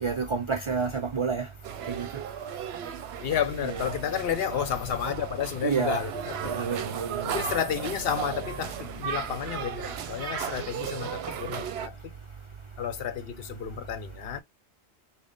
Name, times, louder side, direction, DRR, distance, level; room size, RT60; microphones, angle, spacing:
voice 1, 0.0-1.5 1.9-2.1 3.7-3.8 5.6-6.1 6.4-7.4, right 5 dB, 45° right, 0.4 m, -29 dB
sound 1, 1.6-11.9, right 9 dB, 70° right, 0.8 m, -36 dB
voice 2, 3.2-12.2 12.8-14.4, left 8 dB, 65° left, 0.8 m, -32 dB
3.9 x 2.2 x 3.5 m
omnidirectional pair, 1.1 m